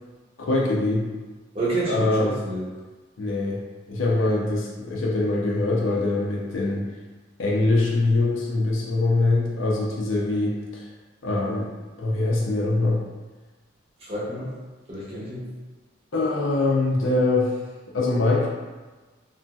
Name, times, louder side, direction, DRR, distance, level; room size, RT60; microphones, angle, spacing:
voice 1, 0.4-1.0 1.9-2.3 3.2-3.6 3.9-6.8 7.4-10.8 11.2-11.7 12.0-13.0 16.1-17.5 17.9-18.5, left 2 dB, 75° left, -2 dB, 0.5 m, -23 dB
voice 2, 1.5-2.7 14.0-14.5 14.9-15.5, right 2 dB, 30° right, -8 dB, 0.8 m, -29 dB
2.9 x 2.6 x 2.3 m, 1.3 s
head